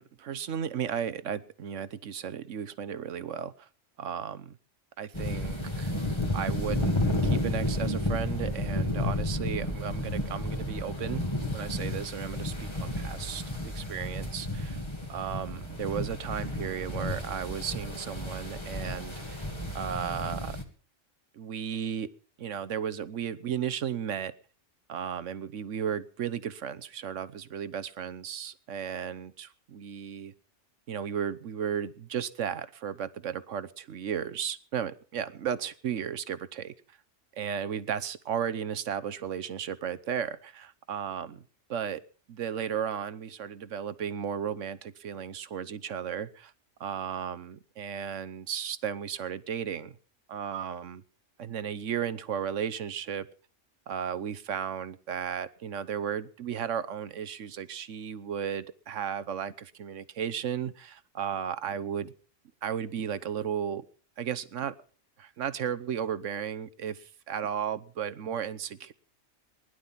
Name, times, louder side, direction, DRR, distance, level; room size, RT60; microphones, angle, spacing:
voice 1, 0.0-3.7 4.0-4.6 5.0-6.0 6.3-7.0 7.2-11.3 11.5-14.8 15.1-19.4 19.7-20.6 21.3-22.1 22.4-24.3 24.9-30.3 30.9-36.7 37.3-41.4 41.7-42.0 42.3-46.5 46.8-50.0 50.3-51.0 51.4-53.3 53.9-62.1 62.6-63.8 64.2-64.7 65.2-68.9, right 8 dB, 85° right, 15 dB, 1.3 m, -34 dB
sound 1, 5.1-20.6, left 1 dB, 25° left, 2.2 m, -32 dB
20.5 x 11.5 x 5.7 m, 0.43 s
omnidirectional pair, 1.2 m